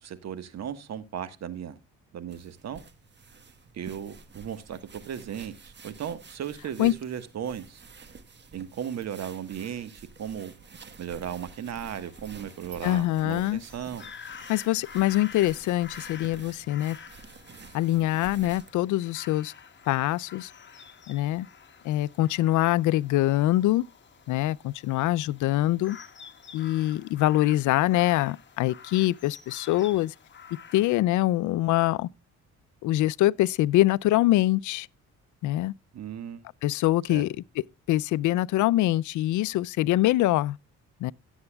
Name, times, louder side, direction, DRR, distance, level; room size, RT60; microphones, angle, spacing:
voice 1, 0.0-1.8 2.1-2.8 3.7-7.8 8.5-10.5 11.0-14.0 35.9-36.4 37.1-37.2, right 9 dB, 60° right, 1.3 m, -36 dB
sound 1, 2.3-18.8, right 5 dB, 35° right, 1.3 m, -50 dB
sound 2, 12.0-31.0, left 7 dB, 40° left, 1.6 m, -49 dB
voice 2, 12.8-13.6 14.5-17.0 17.7-19.5 19.9-20.5 21.1-21.5 21.8-23.8 24.3-26.0 26.5-30.1 30.7-32.1 32.8-34.9 35.4-35.7 36.6-37.4 37.9-40.6 41.0-41.1, left 15 dB, 80° left, 0.4 m, -24 dB
16.5 x 8.0 x 2.2 m
cardioid pair, 90°, 30 cm